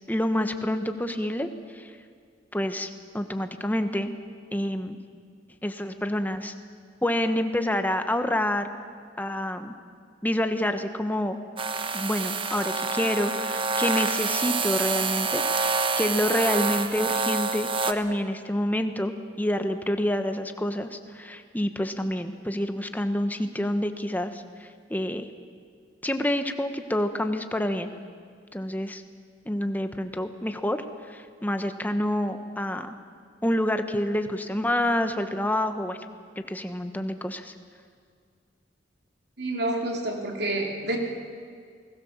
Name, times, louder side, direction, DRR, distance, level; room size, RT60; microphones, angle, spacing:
voice 1, 0.1-1.5 1.7-1.9 2.5-4.1 4.5-5.0 5.6-6.5 7.0-8.7 9.2-9.7 10.2-11.4 11.9-25.3 26.0-27.9 28.5-29.0 29.5-30.8 31.1-32.9 33.4-36.0 36.5-37.5, left 1 dB, 10° left, 8 dB, 1.2 m, -28 dB
sound 1, 11.6-17.9, right 4 dB, 30° right, 1.1 m, -27 dB
voice 2, 39.4-41.0, right 1 dB, 60° right, 1 dB, 3.4 m, -28 dB
28.5 x 19.5 x 7.3 m, 2.1 s
head